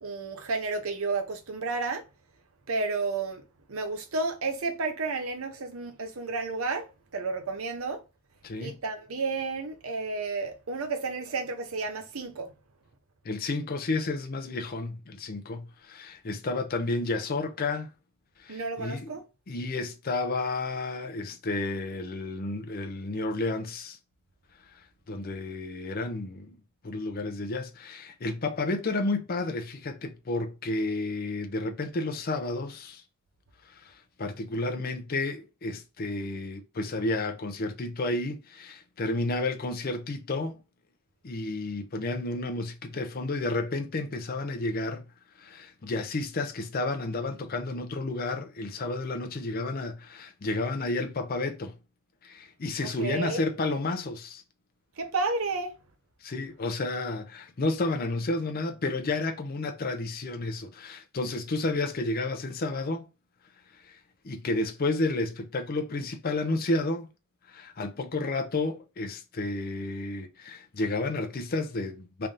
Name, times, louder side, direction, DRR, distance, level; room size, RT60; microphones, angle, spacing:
voice 1, 0.0-2.0 2.7-3.4 3.7-6.9 7.1-8.0 8.6-12.5 18.5-19.2 53.0-53.4 55.0-55.7, right 3 dB, 70° right, 0.8 m, -31 dB
voice 2, 8.4-8.8 13.2-17.9 18.4-19.2 19.5-24.0 24.7-26.6 26.8-33.0 33.6-40.6 41.2-45.1 45.4-51.8 52.2-54.4 56.2-63.1 63.7-64.0 64.2-67.1 67.5-72.3, left 2 dB, 40° left, 0.5 m, -31 dB
3.3 x 2.7 x 3.7 m
head